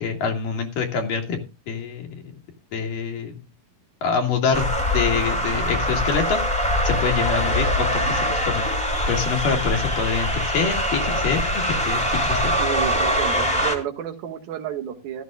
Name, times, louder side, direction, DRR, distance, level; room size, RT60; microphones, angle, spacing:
voice 1, 0.0-1.4 1.7-2.3 2.7-3.3 4.0-6.4 6.8-8.7 9.1-12.6, left 6 dB, 70° left, 3 dB, 3.5 m, -25 dB
sound 1, 4.5-13.8, equal, 5° left, 1.7 m, -23 dB
voice 2, 12.6-15.2, right 9 dB, 85° right, 5 dB, 3.4 m, -31 dB
15.5 x 12.5 x 2.3 m, 0.27 s
omnidirectional pair, 4.0 m